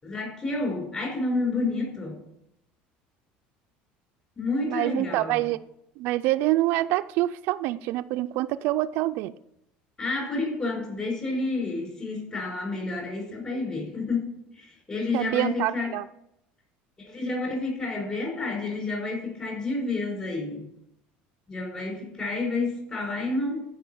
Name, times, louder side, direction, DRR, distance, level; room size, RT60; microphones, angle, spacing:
voice 1, 0.0-2.2 4.4-5.4 10.0-16.0 17.0-20.7 21.5-23.6, left 3 dB, 25° left, 4.9 m, -30 dB
voice 2, 4.7-5.6 6.0-9.3 15.1-16.0, right 16 dB, 65° right, 0.4 m, -26 dB
14.0 x 5.5 x 7.0 m
cardioid pair, 155°, 4 cm